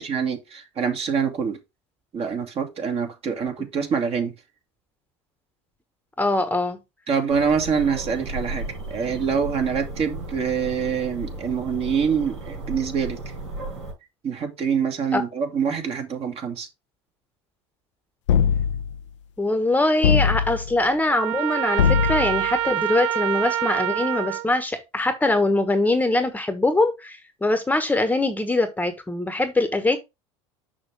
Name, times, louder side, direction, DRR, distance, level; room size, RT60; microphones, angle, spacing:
voice 1, 0.0-1.6 2.1-4.3 7.1-13.2 14.2-16.7, right 6 dB, 40° right, 2.1 m, -25 dB
voice 2, 6.2-6.8 15.1-15.2 19.4-30.0, left 2 dB, 10° left, 1.2 m, -22 dB
sound 1, 7.3-13.9, right 2 dB, 90° right, 4.8 m, -35 dB
sound 2, 18.3-19.0 20.0-20.8 21.8-22.5, left 8 dB, 85° left, 0.6 m, -21 dB
Trumpet, 21.1-24.5, right 12 dB, 70° right, 0.5 m, -26 dB
6.4 x 6.0 x 3.4 m
hypercardioid pair, 85°, 15 cm